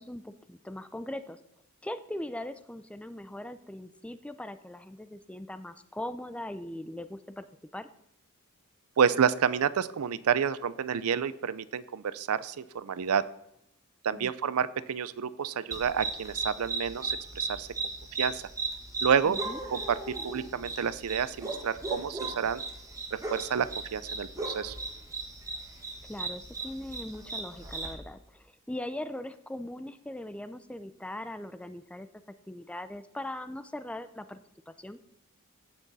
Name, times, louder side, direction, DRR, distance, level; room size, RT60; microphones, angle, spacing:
voice 1, 0.0-1.4 1.8-7.5 7.7-7.9 14.1-14.3 19.2-19.6 26.1-32.1 32.5-34.4 34.7-35.0, left 1 dB, 5° left, 11 dB, 0.4 m, -40 dB
voice 2, 9.0-13.2 14.0-17.7 18.2-18.4 19.0-19.4 19.7-22.6 23.1-24.8, right 7 dB, 75° right, 17 dB, 0.5 m, -29 dB
sound 1, 15.7-27.9, right 3 dB, 15° right, 1.5 m, -37 dB
15.5 x 6.1 x 4.1 m, 0.81 s
head